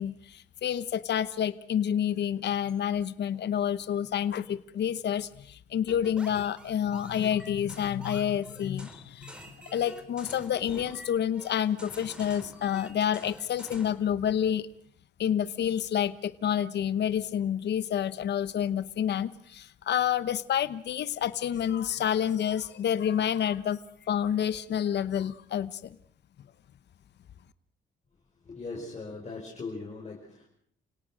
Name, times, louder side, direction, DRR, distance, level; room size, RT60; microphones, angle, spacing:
voice 1, 0.0-9.4 9.7-14.7 15.2-23.8 24.1-25.9, left 9 dB, 60° left, 14 dB, 0.9 m, -29 dB
sound 1, 5.9-14.0, equal, 5° right, 4.5 m, -48 dB
voice 2, 28.4-30.5, left 3 dB, 35° left, -3 dB, 5.9 m, -39 dB
29.0 x 17.5 x 6.4 m, 0.62 s
cardioid pair, 90°, 20 cm